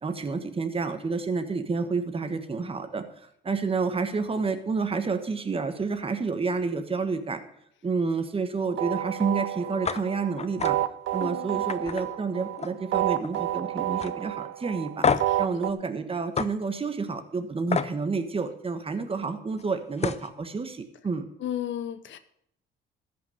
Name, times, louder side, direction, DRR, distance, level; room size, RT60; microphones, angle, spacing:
voice 1, 0.0-3.0 3.4-7.4 7.8-10.8 11.1-15.1 15.4-21.3, right 4 dB, 30° right, 1.3 m, -29 dB
sound 1, 8.6-15.7, right 13 dB, 75° right, 0.6 m, -30 dB
sound 2, 9.8-10.0 10.4-10.7 11.1-11.3 11.7-12.9 13.2-13.6 14.0-14.1 15.0-15.4 16.4-16.5 17.7-17.9 19.6-19.7 20.0-20.3, left 6 dB, 35° left, 0.7 m, -28 dB
voice 2, 11.2-11.7 15.3-15.4 21.4-22.2, left 11 dB, 70° left, 0.9 m, -34 dB
13.5 x 5.9 x 7.7 m
cardioid pair, 90°, 20 cm